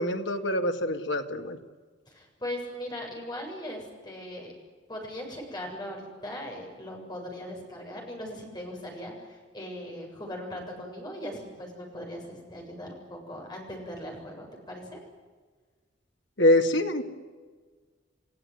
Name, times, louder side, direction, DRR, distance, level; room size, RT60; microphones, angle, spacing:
voice 1, 0.0-1.6 16.4-17.0, left 1 dB, 70° left, 5 dB, 2.2 m, -24 dB
voice 2, 2.1-4.5 4.9-15.0, left 1 dB, 20° left, 0 dB, 7.3 m, -39 dB
29.0 x 16.5 x 9.6 m, 1.4 s
head